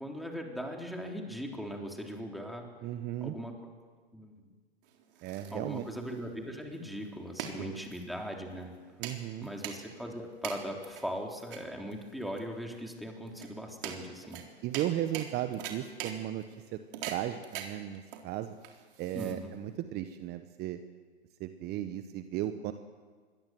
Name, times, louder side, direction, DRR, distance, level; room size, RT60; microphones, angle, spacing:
voice 1, 0.0-2.7 3.2-3.7 4.1-4.3 5.5-8.7 9.4-14.4 19.1-19.6, equal, ahead, 1 dB, 3.7 m, -39 dB
voice 2, 2.8-3.3 5.2-5.8 7.6-7.8 9.0-9.5 14.6-16.4 16.7-16.8 17.1-18.5 19.0-20.8 21.4-22.7, right 12 dB, 30° right, 10 dB, 1.2 m, -35 dB
sound 1, 4.8-19.7, right 9 dB, 50° right, 4.0 m, -44 dB
26.5 x 21.5 x 7.8 m, 1.5 s
hypercardioid pair, 115°, 33 cm